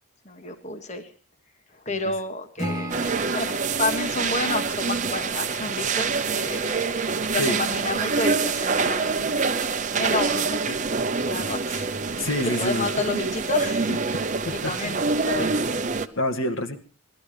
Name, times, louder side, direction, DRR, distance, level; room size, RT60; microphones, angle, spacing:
voice 1, 0.2-1.1 1.8-6.8 7.3-9.1 10.0-10.8 11.3-11.9 12.6-14.0 14.5-15.6, left 3 dB, 35° left, 7 dB, 1.5 m, -30 dB
Acoustic guitar / Strum, 2.6-5.8, equal, 20° right, 1.4 m, -36 dB
sound 1, 2.9-16.1, right 4 dB, 35° right, 0.8 m, -26 dB
voice 2, 12.2-12.9 14.5-14.7 16.2-16.8, left 1 dB, 65° left, 7 dB, 1.9 m, -26 dB
20.5 x 13.0 x 5.0 m, 0.39 s
head